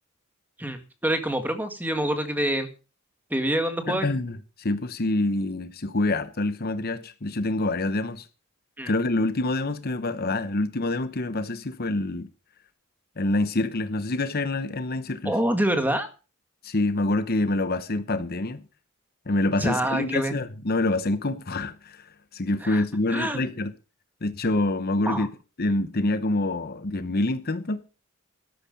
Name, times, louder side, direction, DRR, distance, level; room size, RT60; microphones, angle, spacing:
voice 1, 0.6-2.7 3.3-4.1 8.8-8.9 15.3-16.1 19.6-20.3 22.6-22.8 23.1-23.4 25.1-25.3, right 1 dB, 10° right, 1.8 m, -26 dB
voice 2, 3.9-8.3 8.9-12.3 13.2-15.3 16.6-18.6 19.3-23.7 24.2-25.3 25.6-27.9, left 2 dB, 45° left, 0.9 m, -26 dB
13.0 x 11.5 x 5.3 m
head